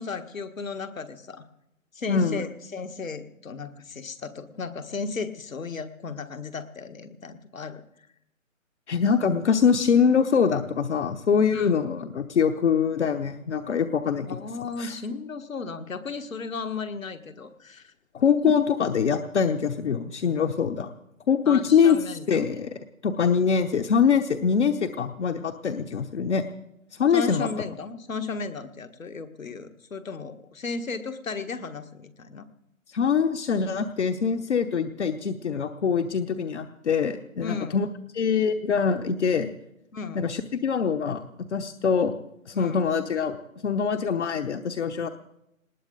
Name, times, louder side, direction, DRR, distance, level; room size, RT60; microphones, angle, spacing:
voice 1, 0.0-1.5 1.9-7.8 11.5-11.8 14.3-17.9 21.5-22.5 27.1-32.5 37.4-37.8 39.9-40.2 42.5-42.9, left 4 dB, 75° left, 9 dB, 1.6 m, -35 dB
voice 2, 2.1-2.4 8.9-14.4 14.8-14.9 18.1-20.9 21.3-22.0 22.3-26.4 26.9-27.5 32.9-37.9 38.1-39.5 40.1-42.2 42.5-43.4 43.6-45.1, left 6 dB, 55° left, 7 dB, 1.1 m, -24 dB
19.5 x 18.5 x 3.9 m, 0.82 s
figure-of-eight pair, 145°, 41 cm